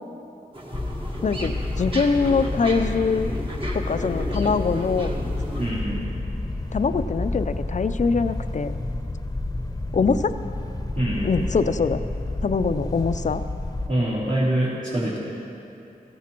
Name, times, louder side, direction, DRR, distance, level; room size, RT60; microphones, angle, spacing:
sound 1, 0.5-5.7, right 1 dB, 30° right, 1.7 m, -34 dB
sound 2, 0.7-13.9, left 2 dB, 20° left, 0.9 m, -30 dB
voice 1, 1.2-3.3 3.7-5.1 6.7-8.7 9.9-10.3 11.2-12.0 12.4-13.4, left 4 dB, 50° left, 11 dB, 0.5 m, -23 dB
voice 2, 5.6-6.1 10.9-11.3 13.9-15.2, right 1 dB, 50° right, -10 dB, 3.0 m, -24 dB
16.5 x 14.5 x 3.0 m, 2.8 s
cardioid pair, 60°, 17 cm